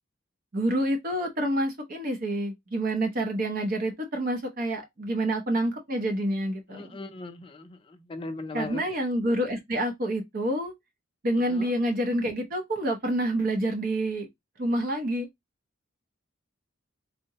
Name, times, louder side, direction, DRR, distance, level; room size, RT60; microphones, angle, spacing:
voice 1, 0.5-7.0 8.5-10.7 11.2-14.3 14.6-15.3, right 1 dB, 45° right, 0.6 m, -28 dB
voice 2, 6.7-7.8 8.1-8.8 11.5-11.7, left 2 dB, 25° left, 0.4 m, -38 dB
3.6 x 2.1 x 2.7 m
head